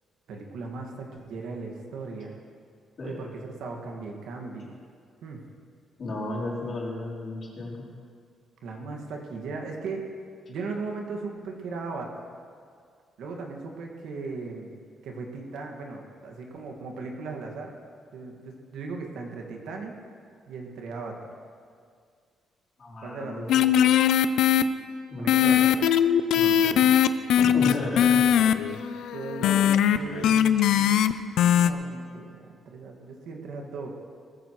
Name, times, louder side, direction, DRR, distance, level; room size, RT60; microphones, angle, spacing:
voice 1, 0.3-2.4 3.0-4.7 5.2-5.4 8.6-10.0 10.5-12.1 13.2-14.7 15.0-17.7 18.1-19.9 20.5-21.2 23.0-23.9 25.2-25.8 29.1-31.0 31.5-33.9, right 4 dB, 80° right, 1 dB, 1.8 m, -37 dB
voice 2, 6.0-7.9 22.8-23.5 25.1-25.6 26.3-26.9 27.4-28.2, left 2 dB, 40° left, -5 dB, 3.9 m, -33 dB
sound 1, 23.5-24.6 25.3-31.1 31.4-31.7, left 10 dB, 80° left, 0.5 m, -20 dB
19.0 x 14.5 x 3.1 m, 2.1 s
cardioid pair, 150°, 0 cm